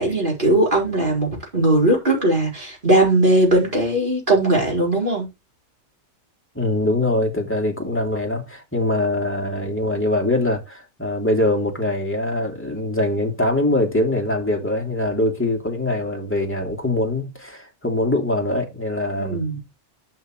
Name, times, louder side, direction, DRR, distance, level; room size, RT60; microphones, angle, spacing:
voice 1, 0.0-5.3 19.2-19.6, right 1 dB, 30° right, 4.8 m, -19 dB
voice 2, 6.5-19.4, left 1 dB, 5° left, 2.8 m, -23 dB
11.5 x 6.7 x 3.2 m
omnidirectional pair, 1.7 m